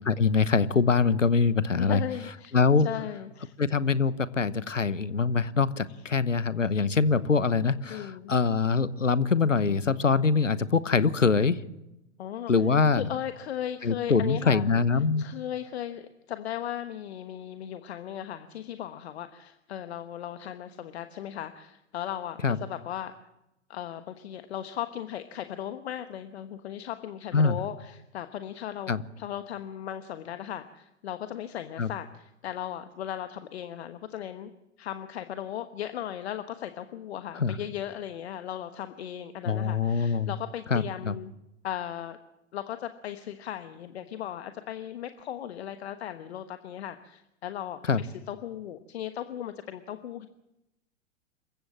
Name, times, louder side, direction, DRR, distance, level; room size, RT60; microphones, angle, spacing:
voice 1, 0.0-2.0 2.5-2.9 3.6-11.6 12.5-13.1 13.8-15.2 22.4-22.6 27.3-27.6 28.9-29.0 31.8-31.9 37.4-37.6 39.5-40.3 40.7-41.1 47.9-48.0, left 5 dB, 85° left, 17 dB, 1.1 m, -24 dB
voice 2, 1.7-2.5 2.8-3.5 7.9-8.3 12.2-12.5 12.9-14.6 15.2-23.1 23.7-34.5 34.8-41.3 41.6-42.2 42.5-50.3, left 11 dB, 60° left, 9 dB, 1.3 m, -37 dB
27.0 x 15.5 x 7.5 m, 0.90 s
figure-of-eight pair, 100°, 37 cm